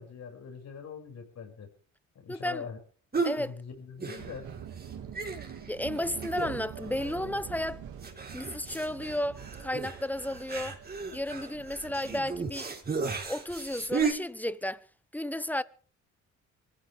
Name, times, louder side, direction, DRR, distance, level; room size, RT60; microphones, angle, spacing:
voice 1, 0.0-1.7 2.1-2.8 3.1-4.5, left 6 dB, 60° left, 6.6 m, -43 dB
voice 2, 2.3-2.6 3.2-3.5 5.7-7.8 8.3-10.8 11.1-12.7 13.3-14.8 15.1-15.6, left 1 dB, 5° left, 0.9 m, -33 dB
sound 1, 3.1-3.4 4.0-4.5 4.8-4.9 5.1-5.7 6.2-6.7 7.0-7.1 8.0-14.1, right 5 dB, 30° right, 4.1 m, -34 dB
sound 2, 4.2-12.3, right 8 dB, 75° right, 3.0 m, -45 dB
24.0 x 15.0 x 3.5 m
cardioid pair, 90°, 30 cm